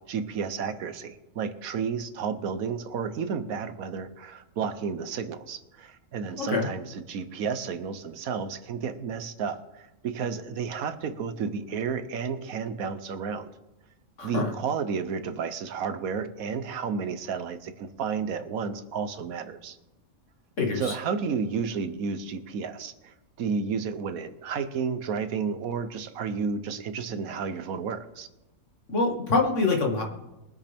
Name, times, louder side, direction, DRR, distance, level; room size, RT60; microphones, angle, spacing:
voice 1, 0.0-13.5 14.2-19.8 20.8-28.3, right 6 dB, 80° right, 11 dB, 1.3 m, -32 dB
voice 2, 6.4-6.7 14.2-14.5 20.6-21.0 28.9-30.0, left 3 dB, 60° left, 1 dB, 2.1 m, -25 dB
22.5 x 8.2 x 3.5 m, 0.99 s
omnidirectional pair, 1.5 m